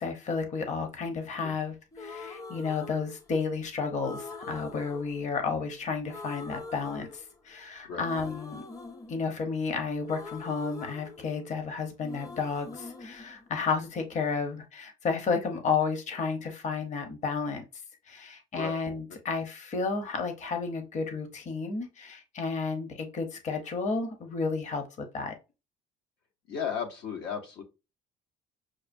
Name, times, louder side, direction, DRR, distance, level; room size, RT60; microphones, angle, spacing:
voice 1, 0.0-8.6 9.1-17.6 18.1-25.3, left 4 dB, 45° left, 5 dB, 0.9 m, -32 dB
sound 1, 1.9-3.6 4.0-5.8 6.1-7.6 8.0-11.7 12.0-14.1, left 3 dB, 20° left, 0.5 m, -44 dB
voice 2, 26.5-27.6, left 7 dB, 85° left, 4 dB, 1.0 m, -34 dB
6.3 x 2.2 x 2.6 m, 0.28 s
cardioid pair, 110°, 17 cm